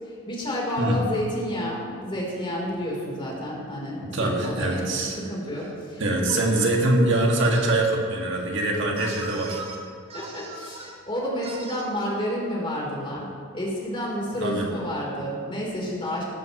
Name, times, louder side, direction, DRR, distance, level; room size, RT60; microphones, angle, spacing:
voice 1, 0.0-6.4 10.1-13.3 13.5-16.2, equal, 25° left, -3 dB, 3.7 m, -30 dB
voice 2, 4.0-5.2 6.0-9.6 14.4-14.7, right 1 dB, 65° right, -1 dB, 2.1 m, -23 dB
sound 1, 6.3-6.5 7.4-7.8 8.9-9.7 10.1-11.0 11.4-11.8, right 3 dB, 30° right, 2.5 m, -39 dB
18.0 x 13.5 x 3.1 m, 2.5 s
head